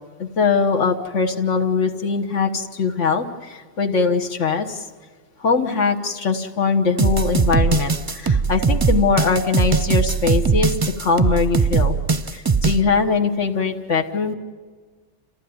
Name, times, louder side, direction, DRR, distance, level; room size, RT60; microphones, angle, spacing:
voice 1, 0.2-4.9 5.4-12.0 12.3-14.3, left 5 dB, 85° left, 4 dB, 1.7 m, -21 dB
sound 1, 7.0-12.8, right 5 dB, 25° right, 0.5 m, -20 dB
30.0 x 15.0 x 9.5 m, 1.5 s
omnidirectional pair, 1.2 m